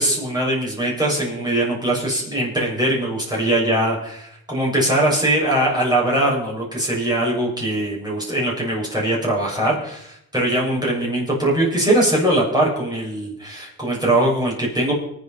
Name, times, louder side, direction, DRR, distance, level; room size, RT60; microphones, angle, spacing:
voice 1, 0.0-14.9, right 1 dB, 10° right, -5 dB, 7.5 m, -21 dB
24.5 x 9.2 x 4.6 m, 0.74 s
cardioid pair, 70°, 35 cm